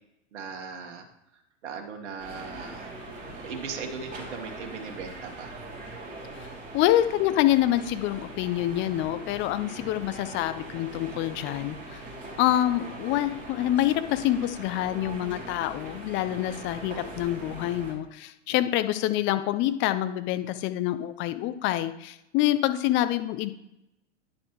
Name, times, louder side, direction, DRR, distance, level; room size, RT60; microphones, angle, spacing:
voice 1, 0.3-1.1 1.6-2.9 3.4-5.6 9.5-9.7 18.5-18.6, right 5 dB, 65° right, 3 dB, 1.6 m, -38 dB
sound 1, 2.2-17.9, right 2 dB, 20° right, 2.9 m, -41 dB
voice 2, 6.4-12.0 12.4-23.5, left 13 dB, 30° left, 11 dB, 0.6 m, -26 dB
10.0 x 6.9 x 3.1 m, 0.85 s
figure-of-eight pair, 100°, 37 cm